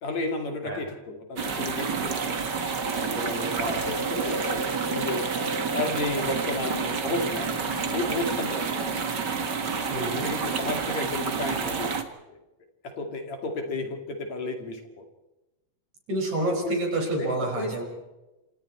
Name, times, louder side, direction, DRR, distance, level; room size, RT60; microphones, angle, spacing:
voice 1, 0.0-2.4 2.9-5.3 5.7-9.1 10.0-12.0 12.3-12.4 12.8-15.1 16.4-16.8 17.2-17.8, left 2 dB, 55° left, 4 dB, 3.6 m, -33 dB
sound 1, 1.4-12.0, equal, 20° left, 3.0 m, -37 dB
sound 2, 1.4-12.0, right 6 dB, 40° right, 1.8 m, -29 dB
voice 2, 9.9-10.3 16.1-17.8, right 1 dB, 60° right, 1 dB, 6.9 m, -28 dB
27.5 x 27.5 x 4.4 m, 1.0 s
omnidirectional pair, 3.7 m